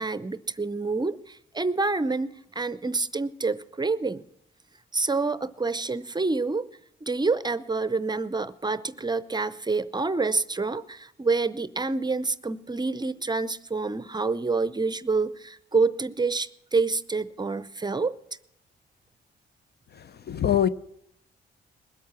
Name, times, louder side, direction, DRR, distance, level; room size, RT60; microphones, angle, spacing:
voice 1, 0.0-4.2 4.9-6.7 7.0-18.1, right 3 dB, 20° right, 0.6 m, -27 dB
voice 2, 20.0-20.7, left 10 dB, 55° left, 0.6 m, -24 dB
20.5 x 8.5 x 5.9 m
cardioid pair, 90°, 20 cm